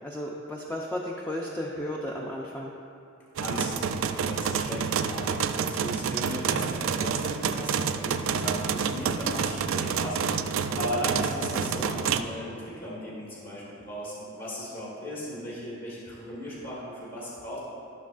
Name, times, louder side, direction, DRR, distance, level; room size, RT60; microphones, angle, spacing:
voice 1, 0.0-2.7, left 1 dB, 10° left, -3 dB, 0.5 m, -34 dB
voice 2, 3.4-17.6, equal, 45° left, -8 dB, 1.5 m, -36 dB
sound 1, 3.4-12.2, right 6 dB, 75° right, 0.3 m, -28 dB
12.5 x 6.2 x 2.5 m, 2.6 s
head